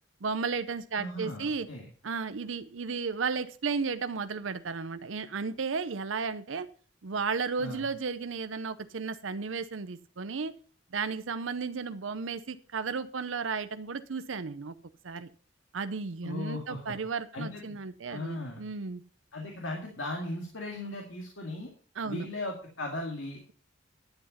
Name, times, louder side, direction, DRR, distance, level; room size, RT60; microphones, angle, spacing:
voice 1, 0.2-1.7 2.0-6.7 7.0-10.5 10.9-14.7 15.0-15.3 15.7-19.0 22.0-22.3, right 5 dB, 80° right, 11 dB, 0.6 m, -34 dB
voice 2, 1.0-1.9 7.6-7.9 16.2-17.0 17.3-17.8 18.1-18.6 19.3-21.7 22.0-23.5, left 2 dB, 80° left, 0 dB, 2.2 m, -37 dB
11.5 x 7.9 x 5.5 m, 0.41 s
head